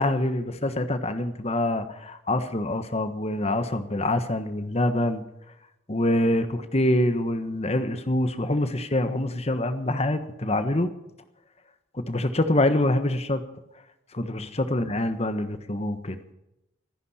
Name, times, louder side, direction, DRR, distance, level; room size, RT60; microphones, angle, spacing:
voice 1, 0.0-5.2 5.9-10.9 11.9-13.4 14.1-16.2, left 1 dB, 30° left, 10 dB, 1.3 m, -25 dB
25.0 x 10.5 x 4.4 m, 0.88 s
head